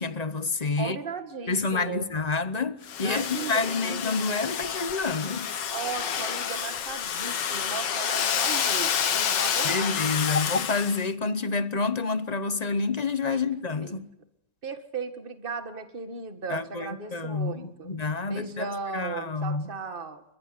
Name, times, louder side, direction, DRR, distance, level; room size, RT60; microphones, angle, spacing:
voice 1, 0.0-1.0 1.5-5.5 9.6-14.1 16.5-18.7 18.9-19.6, left 4 dB, 30° left, 0.8 m, -28 dB
voice 2, 0.8-2.1 3.0-4.0 5.7-9.9 13.3-13.4 13.8-14.0 14.6-17.9 18.3-20.2, right 5 dB, 30° right, 2.1 m, -36 dB
Domestic sounds home sounds, 2.8-11.1, left 8 dB, 85° left, 2.0 m, -29 dB
29.5 x 15.5 x 9.6 m
omnidirectional pair, 1.9 m